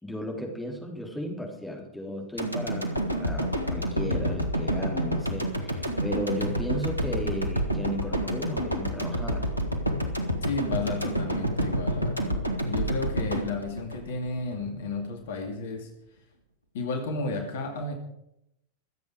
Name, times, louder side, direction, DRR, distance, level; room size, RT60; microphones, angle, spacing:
voice 1, 0.0-9.5, equal, 5° left, 0 dB, 3.5 m, -35 dB
sound 1, 2.4-14.6 15.0-15.1, equal, 90° left, 1.6 m, -29 dB
voice 2, 10.4-15.9 16.7-18.0, left 3 dB, 55° left, 5 dB, 2.2 m, -33 dB
24.5 x 8.3 x 4.9 m, 0.80 s
figure-of-eight pair, 90°, 0 cm